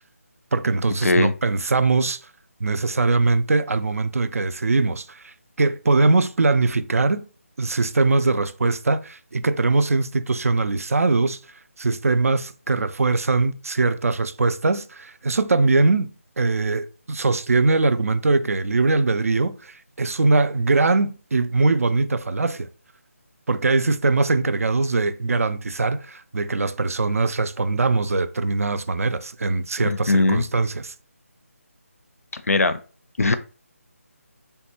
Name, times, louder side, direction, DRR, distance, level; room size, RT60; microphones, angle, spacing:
voice 1, 0.5-2.2 2.6-7.3 7.6-11.4 11.8-22.7 23.5-30.9, right 3 dB, 70° right, 0.3 m, -21 dB
voice 2, 1.0-1.3 29.8-30.5 32.3-32.8 33.2-33.4, left 3 dB, 75° left, 0.4 m, -20 dB
3.7 x 2.2 x 2.8 m
figure-of-eight pair, 160°, 8 cm